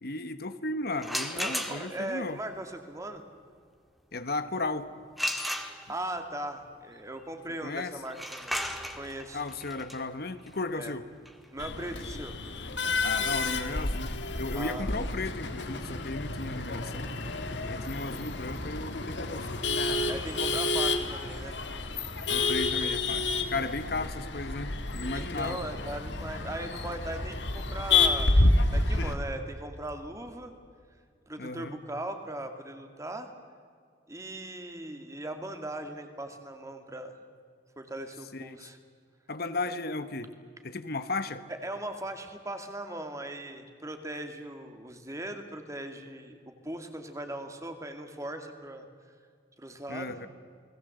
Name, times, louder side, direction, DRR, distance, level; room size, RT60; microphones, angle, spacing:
voice 1, 0.0-2.4 4.1-4.9 7.6-7.9 9.3-11.1 13.0-17.1 17.7-19.6 22.3-25.6 31.4-31.7 38.3-38.7 39.3-40.3 40.6-41.4 49.9-50.3, left 3 dB, 60° left, 11 dB, 1.2 m, -35 dB
sound 1, 1.0-2.1 5.2-6.2 8.1-13.7, equal, ahead, 1.7 m, -36 dB
voice 2, 1.3-3.2 5.9-8.6 9.0-9.4 10.7-10.9 11.5-12.4 14.5-14.8 19.9-21.6 25.1-28.4 28.7-30.5 31.3-33.3 34.1-37.2 37.8-38.8 41.5-48.9 49.6-50.2, right 1 dB, 15° right, 6 dB, 2.3 m, -39 dB
Male speech man speaking / Laughter / Chatter, 11.6-29.1, left 3 dB, 80° left, 2.1 m, -29 dB
29.5 x 20.0 x 8.0 m, 2.1 s
head